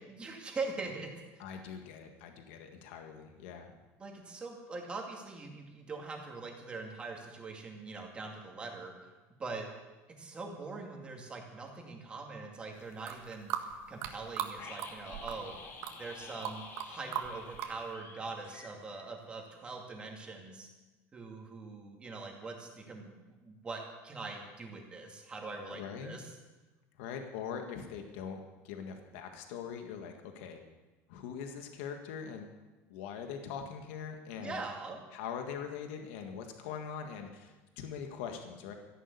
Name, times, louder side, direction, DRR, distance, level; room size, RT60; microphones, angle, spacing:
voice 1, 0.1-1.6 4.0-9.1 9.4-9.7 10.2-15.6 16.0-20.7 21.1-26.3 34.4-35.0, right 3 dB, 15° right, 1 dB, 2.5 m, -43 dB
voice 2, 1.4-3.7 25.8-26.2 27.0-30.6 31.1-32.5 32.9-34.6 35.1-38.7, left 7 dB, 85° left, 5 dB, 1.7 m, -42 dB
sound 1, 12.9-14.5 14.8-15.6 15.8-16.9 17.1-17.7, right 11 dB, 50° right, 1.6 m, -37 dB
sound 2, 14.6-19.4 19.6-19.7, left 4 dB, 35° left, 2.0 m, -50 dB
14.0 x 11.0 x 8.4 m, 1.2 s
cardioid pair, 170°, 6 cm